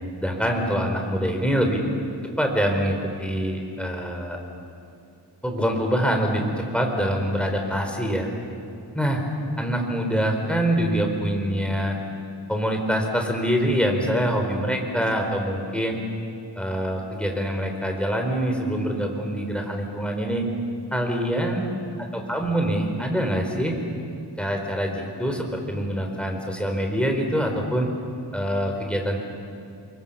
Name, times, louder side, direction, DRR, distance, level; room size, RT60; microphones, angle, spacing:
voice 1, 0.2-1.8 2.4-4.4 5.4-8.3 8.9-9.2 9.6-12.0 12.5-16.0 16.6-20.4 20.9-21.7 22.1-23.7 24.4-27.9 28.3-29.2, equal, 5° left, 2 dB, 4.5 m, -25 dB
29.5 x 23.0 x 7.2 m, 2.7 s
wide cardioid pair, 60°, 41 cm